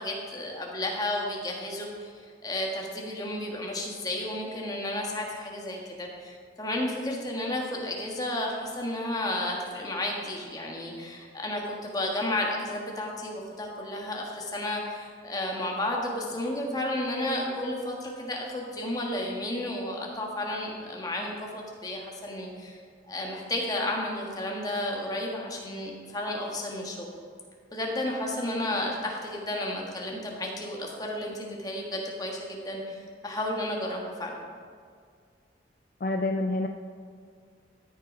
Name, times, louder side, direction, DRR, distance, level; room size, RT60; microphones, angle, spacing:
voice 1, 0.0-2.1 2.4-22.8 23.1-27.1 27.7-34.4, left 1 dB, 20° left, -1 dB, 1.4 m, -32 dB
voice 2, 36.0-36.7, left 2 dB, 45° left, 5 dB, 0.4 m, -27 dB
13.0 x 6.7 x 5.2 m, 2.1 s
head